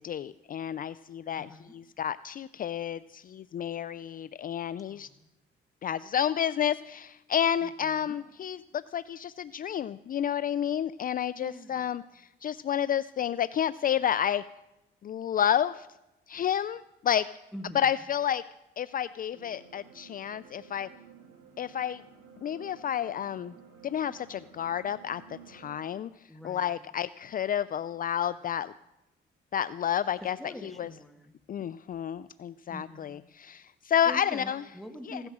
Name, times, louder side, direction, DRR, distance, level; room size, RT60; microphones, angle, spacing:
voice 1, 0.0-5.1 5.8-14.4 15.0-15.9 16.3-17.3 17.7-18.4 18.8-20.9 21.6-22.0 22.4-23.5 23.8-25.2 25.5-26.1 26.4-28.7 29.5-30.9 31.5-34.6 35.1-35.2, left 9 dB, 45° left, 16 dB, 0.4 m, -30 dB
voice 2, 1.3-1.7 4.9-5.3 7.6-8.2 11.3-11.9 17.5-17.9 26.3-26.8 30.4-31.3 32.7-33.2 34.0-35.3, left 1 dB, ahead, 5 dB, 2.1 m, -44 dB
sound 1, 19.3-25.8, right 6 dB, 85° right, 2.1 m, -53 dB
16.5 x 12.5 x 6.2 m, 0.92 s
cardioid pair, 90°, 20 cm